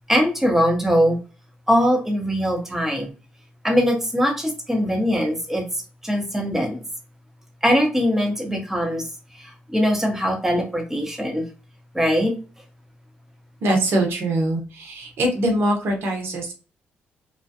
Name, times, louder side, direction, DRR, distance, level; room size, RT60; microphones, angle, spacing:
voice 1, 0.1-1.2 1.7-3.1 3.6-5.7 6.0-6.8 7.6-9.1 9.3-11.5 11.9-12.3, equal, 10° right, 3 dB, 0.8 m, -21 dB
voice 2, 13.6-16.5, right 1 dB, 70° right, 1 dB, 0.9 m, -23 dB
2.3 x 2.2 x 2.6 m, 0.35 s
cardioid pair, 75°, 4 cm